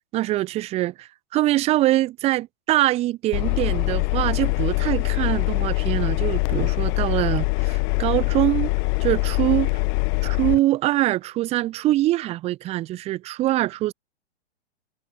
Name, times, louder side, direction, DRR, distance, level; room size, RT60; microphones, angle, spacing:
voice 1, 0.1-8.7 9.0-9.7 10.2-13.9, right 16 dB, 20° right, 0.6 m, -23 dB
Engine, 3.3-10.6, left 38 dB, 40° left, 1.4 m, -23 dB
hypercardioid pair, 125°, 32 cm